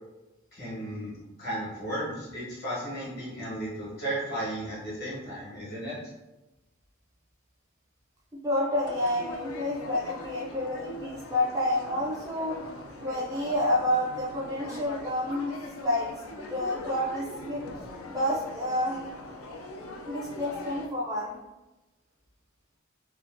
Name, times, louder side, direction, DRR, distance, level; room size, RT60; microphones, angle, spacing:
voice 1, 0.5-6.1, right 1 dB, 45° left, -7 dB, 1.3 m, -35 dB
voice 2, 8.3-17.6 18.1-19.1 20.1-21.4, left 1 dB, 15° right, -4 dB, 0.4 m, -29 dB
sound 1, 8.8-20.9, left 2 dB, 80° left, 0.4 m, -41 dB
2.9 x 2.3 x 2.5 m, 1.0 s
head